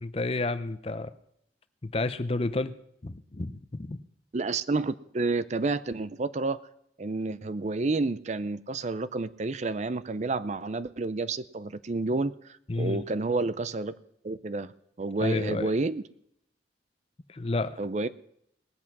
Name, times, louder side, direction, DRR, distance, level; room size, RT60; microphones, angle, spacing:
voice 1, 0.0-1.1 1.8-2.8 3.0-4.0 12.7-13.0 15.2-15.7 17.3-17.8, left 2 dB, 35° left, 13 dB, 0.6 m, -30 dB
voice 2, 4.3-6.6 7.0-13.9 14.2-14.7 15.0-16.0 17.8-18.1, right 3 dB, 40° right, 15 dB, 0.5 m, -30 dB
19.0 x 8.5 x 6.0 m, 0.74 s
head